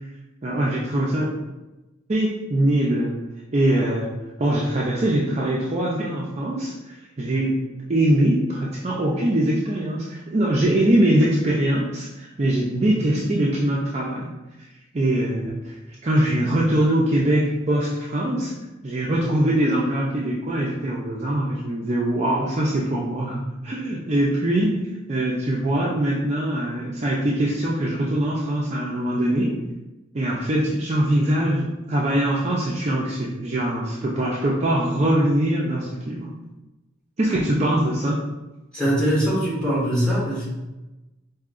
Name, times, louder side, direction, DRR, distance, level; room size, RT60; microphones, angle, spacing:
voice 1, 0.4-1.3 2.1-3.1 3.5-4.1 4.4-7.5 7.9-14.3 14.9-15.8 16.0-18.5 18.8-24.8 25.1-29.5 30.1-36.3 37.2-38.2, right 1 dB, 35° right, -4 dB, 0.4 m, -22 dB
voice 2, 38.7-40.5, equal, 5° left, -7 dB, 1.4 m, -22 dB
4.8 x 2.7 x 2.4 m, 1.0 s
head